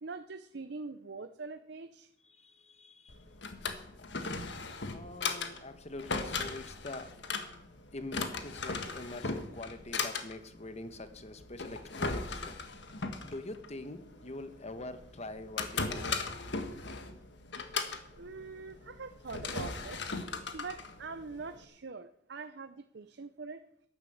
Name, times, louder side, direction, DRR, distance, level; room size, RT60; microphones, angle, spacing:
voice 1, 0.0-2.1 18.1-20.0 20.5-23.6, right 4 dB, 65° right, 9 dB, 0.7 m, -43 dB
voice 2, 2.3-3.2 4.7-7.1 7.9-12.6 13.2-16.3, left 2 dB, 35° left, 10 dB, 1.2 m, -44 dB
Drawer open or close, 3.1-21.6, left 4 dB, 65° left, 1.6 m, -38 dB
12.0 x 11.0 x 7.9 m, 0.74 s
head